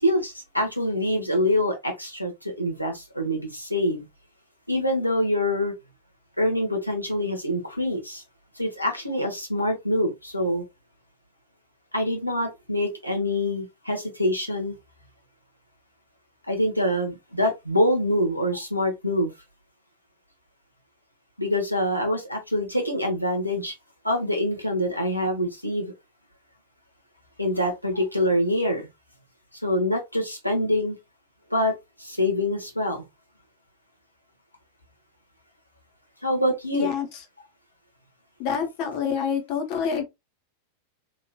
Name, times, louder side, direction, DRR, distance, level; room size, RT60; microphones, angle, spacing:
voice 1, 0.0-4.0 4.7-5.7 6.4-8.2 8.6-10.6 11.9-14.8 16.5-19.3 21.4-23.7 24.0-25.9 27.4-28.9 29.6-31.0 31.5-31.7 32.0-33.0 36.2-36.9, left 1 dB, 90° left, 0.9 m, -25 dB
voice 2, 36.7-37.1 38.4-40.0, left 7 dB, 45° left, 0.9 m, -26 dB
3.0 x 2.6 x 2.3 m
figure-of-eight pair, 90°, 0 cm